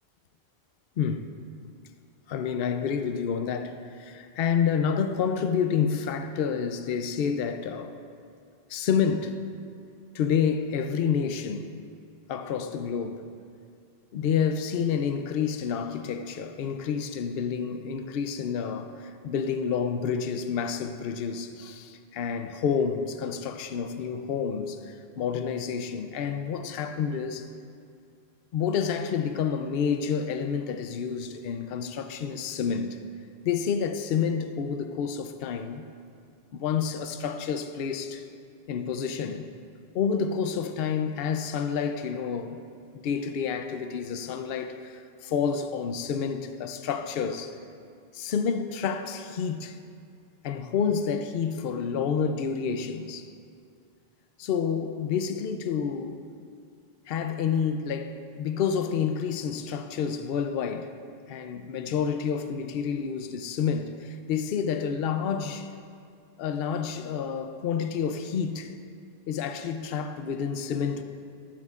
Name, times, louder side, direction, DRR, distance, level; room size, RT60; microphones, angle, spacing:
voice 1, 1.0-1.3 2.3-7.9 8.7-9.4 10.1-11.8 12.3-13.2 14.1-27.5 28.5-32.9 33.4-35.8 36.5-38.2 38.7-39.5 39.9-42.6 42.9-47.6 48.1-49.8 50.4-53.3 54.4-56.2 57.1-60.9 61.3-65.7 66.4-68.7 69.3-71.0, left 7 dB, 70° left, 0.8 m, -29 dB
13.5 x 12.5 x 2.4 m
omnidirectional pair, 1.1 m